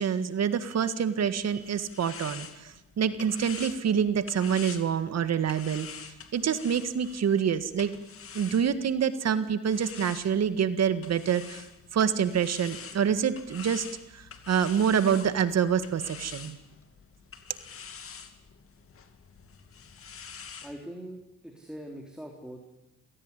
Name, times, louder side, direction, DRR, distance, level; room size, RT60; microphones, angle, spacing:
voice 1, 0.0-5.9 6.3-7.9 8.3-11.7 11.9-13.9 14.1-16.6, right 7 dB, 60° right, 11 dB, 1.8 m, -26 dB
sound 1, 1.2-9.1 9.6-20.7, left 6 dB, 45° left, 2.5 m, -46 dB
voice 2, 20.6-22.6, right 1 dB, 5° right, 1 dB, 3.7 m, -42 dB
27.0 x 17.5 x 9.9 m, 0.92 s
cardioid pair, 90°, 30 cm